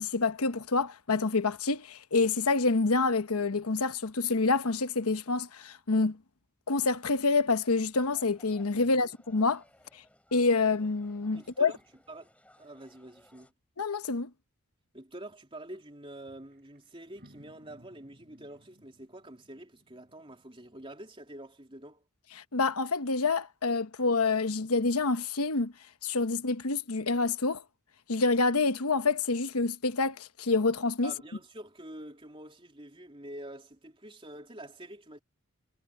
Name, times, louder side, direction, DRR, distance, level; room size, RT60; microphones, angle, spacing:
voice 1, 0.0-6.2 6.7-9.6 10.3-11.7 13.8-14.3 22.5-25.7 26.0-27.6 28.1-31.1, left 3 dB, 80° left, 1.1 m, -27 dB
sound 1, 7.9-13.5, left 1 dB, 5° left, 7.9 m, -62 dB
voice 2, 11.3-11.8 12.1-12.3 12.6-13.5 14.9-22.0 31.0-35.2, right 1 dB, 25° right, 3.4 m, -47 dB
sound 2, 15.7-15.9 16.1-21.1, equal, 45° right, 7.9 m, -61 dB
head